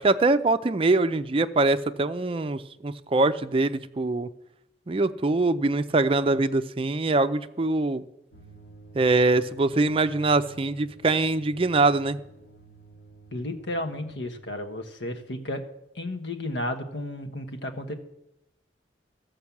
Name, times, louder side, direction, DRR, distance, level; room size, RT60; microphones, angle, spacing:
voice 1, 0.0-4.3 4.9-8.0 8.9-12.2, right 2 dB, 30° right, 11 dB, 0.4 m, -23 dB
sound 1, 8.3-14.3, right 3 dB, 70° left, 1.9 m, -51 dB
voice 2, 13.3-15.6 15.9-17.9, left 1 dB, 85° left, 6 dB, 1.2 m, -33 dB
14.5 x 5.4 x 7.2 m, 0.86 s
head